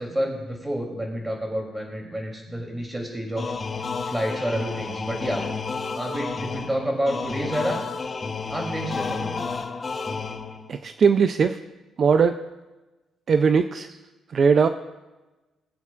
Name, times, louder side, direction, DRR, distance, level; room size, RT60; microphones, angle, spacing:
voice 1, 0.0-3.5 4.0-5.5 5.9-7.8 8.5-9.4, equal, 10° right, 0 dB, 3.1 m, -29 dB
sound 1, 3.4-10.8, left 4 dB, 35° left, 1.1 m, -31 dB
voice 2, 10.7-11.6 12.0-12.4 13.3-13.9 14.3-14.7, right 6 dB, 50° right, 9 dB, 0.5 m, -19 dB
21.0 x 8.2 x 2.5 m, 1.1 s
cardioid pair, 90°, 0 cm